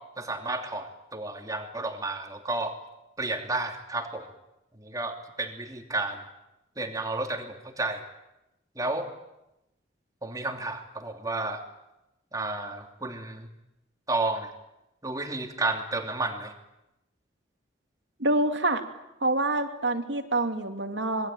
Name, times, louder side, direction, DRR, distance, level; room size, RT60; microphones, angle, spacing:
voice 1, 0.2-2.8 3.2-4.3 4.8-6.2 6.8-8.0 8.8-9.1 10.2-11.6 12.3-13.5 14.1-14.5 15.0-16.5, right 2 dB, 20° right, 4 dB, 2.9 m, -31 dB
voice 2, 18.2-18.8 19.2-21.3, right 2 dB, 70° right, 5 dB, 2.7 m, -26 dB
26.5 x 21.5 x 9.1 m, 0.91 s
head